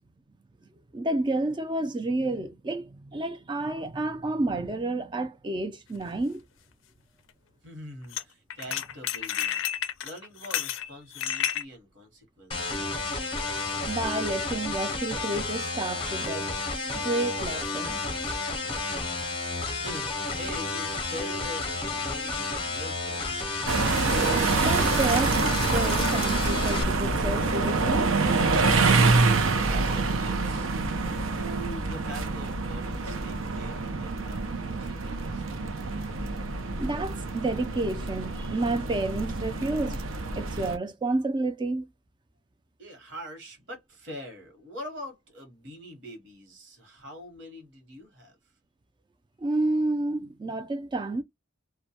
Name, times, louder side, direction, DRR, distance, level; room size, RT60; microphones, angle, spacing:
voice 1, 0.9-6.4 13.8-16.6 16.9-18.0 24.6-28.1 33.9-34.0 36.8-40.0 40.4-41.9 49.4-51.2, right 2 dB, 25° right, 0.3 m, -30 dB
sound 1, 6.0-6.1 8.1-8.2 8.5-11.6, left 10 dB, 80° left, 0.4 m, -30 dB
voice 2, 7.6-9.6 10.0-13.0 19.8-20.1 20.4-23.2 29.6-30.7 31.3-35.8 42.8-48.3, equal, 65° right, 1.1 m, -43 dB
sound 2, 12.5-26.8, left 3 dB, 25° left, 0.6 m, -31 dB
sound 3, 23.7-40.8, right 3 dB, 90° right, 0.5 m, -26 dB
2.2 x 2.1 x 2.7 m
head